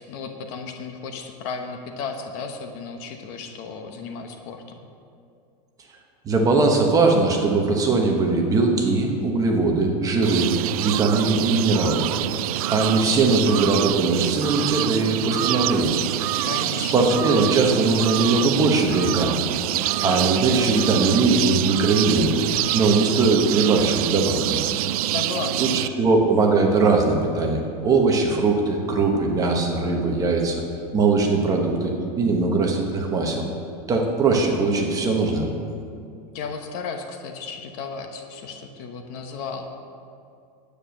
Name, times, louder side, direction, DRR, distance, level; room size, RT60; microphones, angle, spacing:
voice 1, 0.0-4.8 16.4-17.1 25.1-25.7 36.3-39.7, left 5 dB, 40° left, 5 dB, 1.0 m, -34 dB
voice 2, 6.2-12.0 12.7-16.0 16.8-19.3 20.0-22.4 22.7-24.6 25.6-30.6 30.9-33.4 33.9-35.5, right 3 dB, 15° right, 1 dB, 1.1 m, -20 dB
sound 1, 10.2-25.9, right 14 dB, 65° right, 0.4 m, -26 dB
10.0 x 9.2 x 6.4 m, 2.5 s
supercardioid pair, 165°, 20 cm